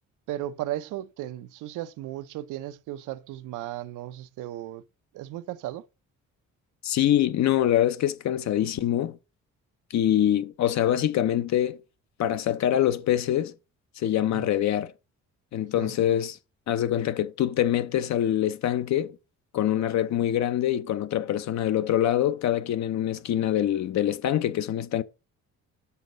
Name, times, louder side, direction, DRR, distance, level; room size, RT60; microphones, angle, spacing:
voice 1, 0.3-4.8 5.1-5.9 14.3-14.5 15.8-15.9, right 14 dB, 85° right, 0.5 m, -35 dB
voice 2, 6.8-9.2 9.9-11.8 12.2-13.5 14.0-14.9 15.5-16.4 16.7-19.1 19.5-25.0, left 11 dB, 65° left, 0.7 m, -24 dB
6.9 x 4.0 x 6.6 m
cardioid pair, 90°, 30 cm